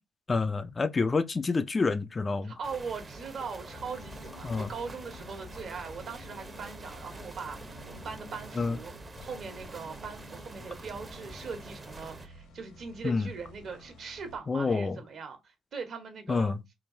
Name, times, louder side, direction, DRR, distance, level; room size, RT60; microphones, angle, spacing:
voice 1, 0.3-2.5 4.4-4.7 8.6-8.8 13.0-13.2 14.5-15.0 16.3-16.6, left 4 dB, 30° left, 0.4 m, -28 dB
voice 2, 2.4-8.9 9.2-16.5, right 5 dB, 60° right, 1.3 m, -40 dB
sound 1, 2.6-12.3, right 2 dB, 30° right, 0.7 m, -46 dB
sound 2, 3.7-14.4, left 2 dB, 90° left, 1.5 m, -51 dB
3.8 x 2.4 x 3.8 m
cardioid pair, 90°, 0 cm